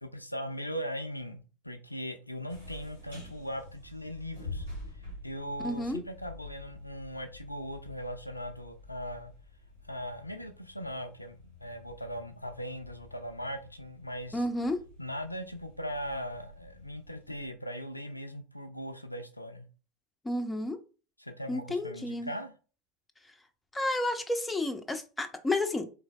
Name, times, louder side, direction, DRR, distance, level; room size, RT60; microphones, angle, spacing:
voice 1, 0.0-4.6 5.2-9.3 9.8-14.4 15.0-19.7 21.2-22.5, equal, 90° left, 7 dB, 0.4 m, -39 dB
sound 1, 2.5-17.5, left 2 dB, 85° right, 1.7 m, -48 dB
voice 2, 5.6-6.0 14.3-14.8 20.2-20.8 21.5-22.3 23.7-25.9, left 1 dB, 10° left, 6 dB, 0.6 m, -31 dB
3.8 x 3.2 x 2.3 m, 0.35 s
figure-of-eight pair, 75°, 0 cm